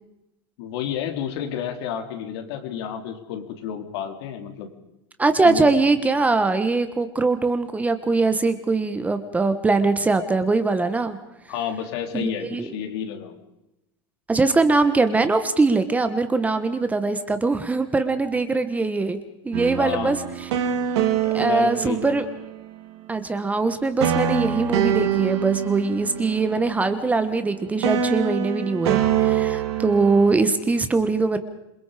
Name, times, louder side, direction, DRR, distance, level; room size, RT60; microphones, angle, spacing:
voice 1, 0.6-4.7 5.4-5.7 11.5-13.4 14.5-14.6 19.8-20.2 21.4-22.2, left 9 dB, 65° left, 6 dB, 3.5 m, -30 dB
voice 2, 5.2-11.2 12.1-12.7 14.3-19.2 19.4-20.2 21.3-22.2 23.1-31.4, right 3 dB, 10° right, 10 dB, 1.3 m, -22 dB
sound 1, 19.5-22.7 24.0-27.5 27.8-30.3, right 9 dB, 75° right, 4.0 m, -25 dB
27.5 x 22.0 x 5.1 m, 0.90 s
supercardioid pair, 145°, 14 cm